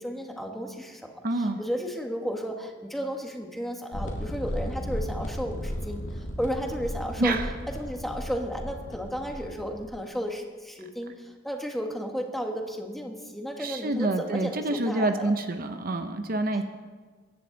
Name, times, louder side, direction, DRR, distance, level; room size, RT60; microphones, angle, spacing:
voice 1, 0.0-7.4 7.7-15.3, equal, ahead, 2 dB, 1.5 m, -33 dB
voice 2, 1.2-1.6 7.2-7.5 13.6-16.6, right 2 dB, 50° right, 7 dB, 0.8 m, -27 dB
sound 1, 3.9-9.8, equal, 90° left, 2.1 m, -35 dB
22.5 x 10.5 x 3.9 m, 1.5 s
head